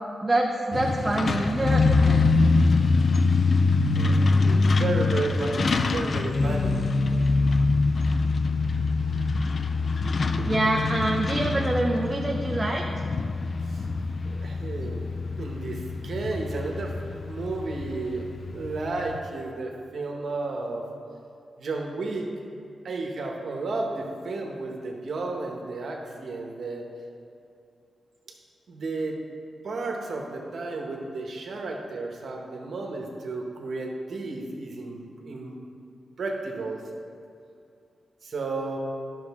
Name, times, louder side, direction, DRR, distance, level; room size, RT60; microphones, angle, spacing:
voice 1, 0.2-2.3 10.5-12.8, right 1 dB, 15° right, 0 dB, 0.5 m, -26 dB
Truck, 0.7-19.2, left 3 dB, 40° left, 0.3 m, -24 dB
voice 2, 3.9-6.8 10.0-10.1 10.4-10.5 11.3-11.5 13.6-13.9 14.2-18.2 18.5-20.8 21.6-22.3 22.8-26.9 28.7-29.2 29.6-35.6 36.2-36.8 38.2-38.8, right 3 dB, 55° right, 1 dB, 1.1 m, -33 dB
12.0 x 6.1 x 3.6 m, 2.5 s
wide cardioid pair, 175°, 0 cm